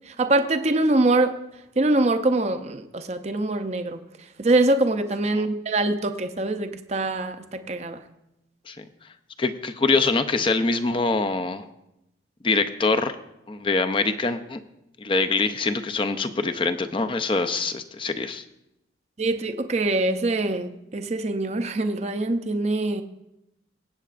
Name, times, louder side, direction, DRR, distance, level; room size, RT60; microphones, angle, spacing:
voice 1, 0.1-1.4 1.8-4.0 4.4-8.0 19.2-23.0, right 2 dB, 35° right, 8 dB, 0.5 m, -24 dB
voice 2, 9.4-11.7 12.4-13.2 13.5-14.6 15.0-18.4, left 3 dB, 25° left, 8 dB, 0.5 m, -24 dB
22.5 x 8.4 x 2.5 m, 0.88 s
head